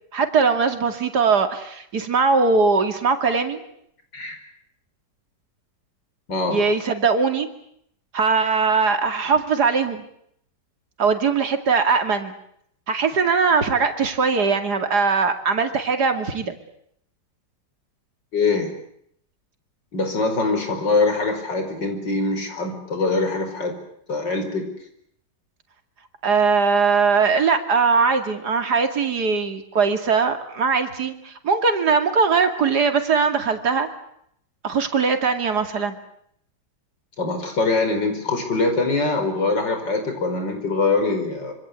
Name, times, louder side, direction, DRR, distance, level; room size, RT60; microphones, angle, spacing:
voice 1, 0.1-3.6 6.5-7.5 8.1-10.0 11.0-12.3 12.9-16.5 26.2-33.9 34.6-36.0, right 5 dB, 65° right, 6 dB, 3.0 m, -20 dB
voice 2, 6.3-6.6 18.3-18.7 19.9-23.7 24.1-24.7 37.2-41.5, left 3 dB, 85° left, 6 dB, 5.6 m, -23 dB
26.5 x 25.0 x 8.3 m, 0.72 s
omnidirectional pair, 1.9 m